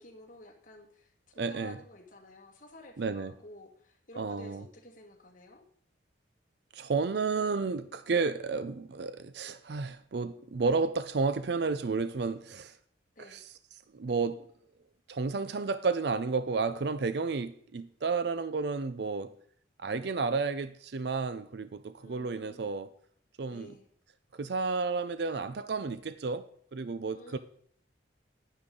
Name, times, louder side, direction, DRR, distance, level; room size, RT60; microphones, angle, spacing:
voice 1, 0.0-5.6 13.2-13.4 22.0-22.8 23.5-23.9 27.1-27.4, left 1 dB, 45° left, 2.1 m, -51 dB
voice 2, 1.4-1.8 3.0-3.3 4.2-4.6 6.7-12.8 13.2-13.5 13.9-14.5 15.1-19.3 19.8-22.9 23.4-23.7 24.3-27.4, right 4 dB, 60° right, 0.5 m, -32 dB
10.0 x 9.7 x 3.8 m
head